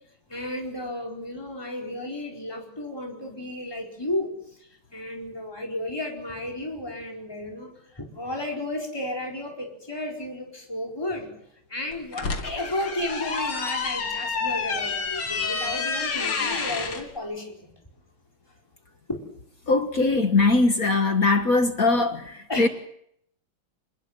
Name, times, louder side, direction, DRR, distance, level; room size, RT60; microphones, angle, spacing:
voice 1, 0.3-4.3 4.9-7.7 7.9-11.3 11.7-17.7 19.1-19.2 22.5-22.7, left 1 dB, 10° left, 5.0 m, -33 dB
sound 1, 11.9-17.0, left 5 dB, 75° left, 3.3 m, -29 dB
voice 2, 19.7-22.7, left 3 dB, 45° left, 1.7 m, -21 dB
28.5 x 20.5 x 7.6 m
omnidirectional pair, 2.3 m